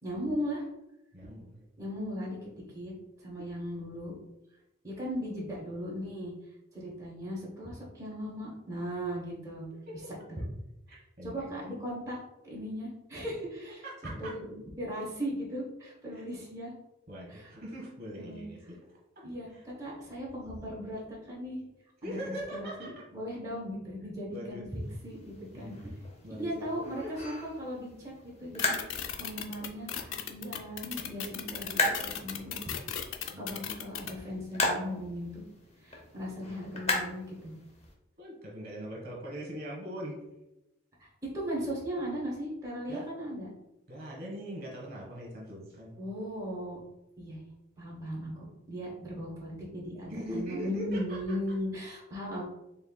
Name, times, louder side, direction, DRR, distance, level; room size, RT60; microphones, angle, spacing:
voice 1, 0.0-0.7 1.8-2.5 2.7-2.9 3.2-4.1 4.8-6.3 6.7-9.6 10.3-10.4 11.2-12.2 12.4-13.8 14.2-16.7 17.3-17.5 18.2-18.5 19.2-21.6 22.0-25.9 26.4-28.7 29.2-32.7 33.4-35.4 35.8-37.5 41.0-43.5 46.0-46.8 47.2-47.4 47.8-52.4, equal, 15° right, -5 dB, 1.0 m, -37 dB
voice 2, 1.1-1.7 9.9-10.0 10.9-11.5 13.8-14.3 16.1-16.2 17.1-18.8 19.1-19.2 19.5-19.6 22.0-23.0 24.3-24.6 25.5-25.8 26.2-27.1 33.3-33.6 38.2-40.2 42.9-43.0 43.9-45.9 50.1-51.3, equal, 50° right, -3 dB, 1.1 m, -41 dB
sound 1, 24.7-37.9, left 2 dB, 30° left, 0.7 m, -37 dB
sound 2, 28.6-34.1, left 9 dB, 75° left, 0.4 m, -36 dB
4.4 x 3.4 x 2.2 m, 0.92 s
head